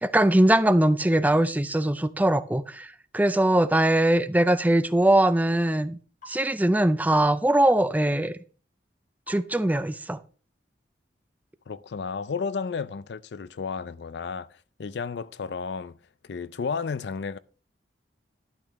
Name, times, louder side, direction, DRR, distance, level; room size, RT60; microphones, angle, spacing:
voice 1, 0.0-6.0 6.3-8.4 9.3-10.2, right 1 dB, 10° right, 0.4 m, -21 dB
sound 1, 6.2-6.4 7.1-7.3 9.3-9.5 9.7-10.1, left 1 dB, 50° left, 6.8 m, -46 dB
voice 2, 11.7-14.5 14.8-15.9 16.3-17.4, left 5 dB, 65° left, 0.4 m, -32 dB
12.0 x 11.0 x 3.0 m
head